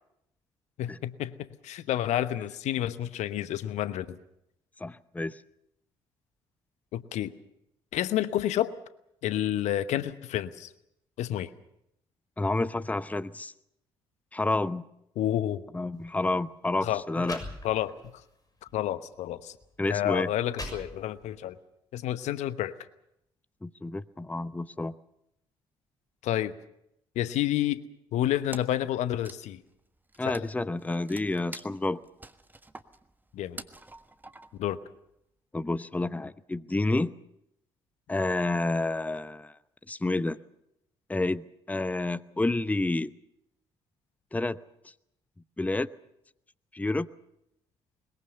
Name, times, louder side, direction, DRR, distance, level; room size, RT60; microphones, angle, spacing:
voice 1, 0.8-4.2 6.9-7.3 7.9-8.8 9.2-10.7 11.2-11.5 15.2-15.6 16.8-17.3 17.6-18.2 18.7-19.5 19.9-21.6 21.9-22.8 26.2-26.5 27.2-27.8 28.1-29.6 30.2-30.5 33.3-33.6 34.6-34.8, left 12 dB, 65° left, 14 dB, 1.0 m, -29 dB
voice 2, 4.8-5.4 12.4-13.5 14.3-14.8 15.7-17.4 19.8-20.3 23.6-24.9 30.2-32.0 35.5-37.2 38.1-39.6 39.9-40.4 41.1-43.1 44.3-44.6 45.6-45.9 46.7-47.1, left 2 dB, 10° left, 15 dB, 0.8 m, -29 dB
sound 1, 15.9-16.1 16.8-16.9 17.2-18.1 18.7-18.8 19.6-19.7 20.2-21.4, left 1 dB, 30° left, 6.9 m, -41 dB
Wood, 28.5-28.9 29.1-34.7, right 2 dB, 15° right, 1.5 m, -47 dB
21.5 x 21.5 x 6.7 m, 0.79 s
figure-of-eight pair, 45°, 13 cm